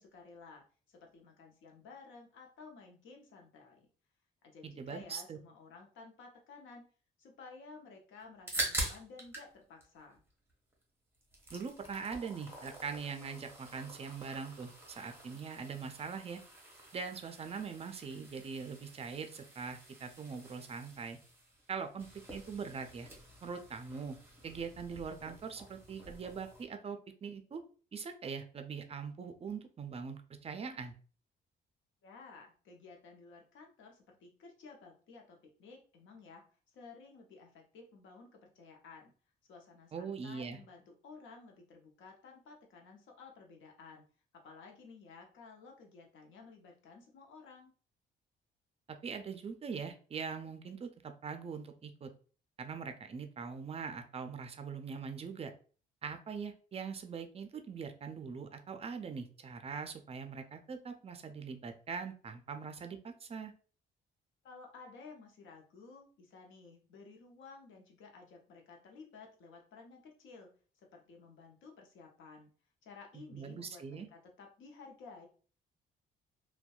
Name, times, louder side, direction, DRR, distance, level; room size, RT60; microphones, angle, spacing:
voice 1, 0.0-3.9 4.4-6.9 7.2-10.2 32.0-39.1 39.5-44.0 44.3-47.7 64.4-72.5 72.8-75.3, left 4 dB, 75° left, 2 dB, 0.7 m, -54 dB
voice 2, 4.6-5.4 11.5-16.4 16.9-21.2 21.7-23.1 23.4-24.2 24.4-27.6 27.9-30.9 39.9-40.6 49.0-52.1 52.6-55.5 56.0-63.5 73.1-74.1, right 5 dB, 30° right, 7 dB, 0.4 m, -42 dB
sound 1, 8.2-9.5 9.8-10.8 11.1-26.6, right 1 dB, 10° right, 0.8 m, -45 dB
2.6 x 2.2 x 2.3 m, 0.40 s
cardioid pair, 90°, 20 cm